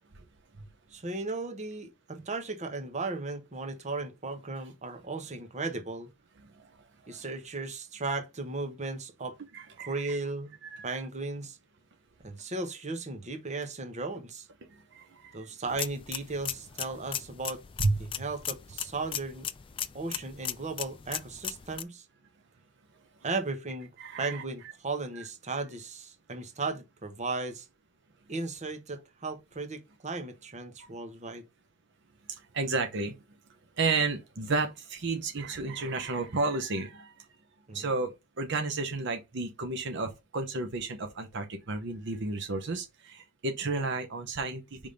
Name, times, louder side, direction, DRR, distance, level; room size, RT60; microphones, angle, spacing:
voice 1, 0.9-6.1 7.1-9.4 9.9-10.5 10.8-11.6 12.2-14.5 15.3-17.6 18.0-19.5 19.9-22.1 23.2-23.9 24.2-27.7 28.3-31.5 37.7-37.8, right 3 dB, 35° right, 1.1 m, -36 dB
voice 2, 6.4-6.8 7.0-7.2 9.5-10.2 10.6-10.9 14.7-15.5 17.8-17.9 24.0-24.4 25.2-25.3 30.8-30.9 32.3-33.2 33.8-37.3 37.7-44.8, right 3 dB, 60° right, 0.8 m, -32 dB
sound 1, 15.7-21.8, left 10 dB, 25° left, 0.3 m, -38 dB
5.1 x 3.6 x 5.2 m
head